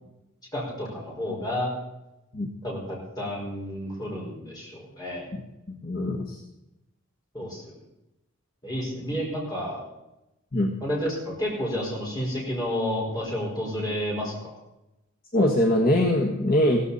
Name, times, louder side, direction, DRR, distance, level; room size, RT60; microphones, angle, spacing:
voice 1, 0.5-1.7 2.6-2.8 3.2-5.2 7.3-7.7 8.6-9.8 10.8-14.6, equal, 20° left, -3 dB, 4.9 m, -30 dB
voice 2, 5.7-6.4 10.5-10.7 15.3-16.8, left 1 dB, 45° left, -1 dB, 1.5 m, -22 dB
16.0 x 14.5 x 4.2 m, 0.92 s
head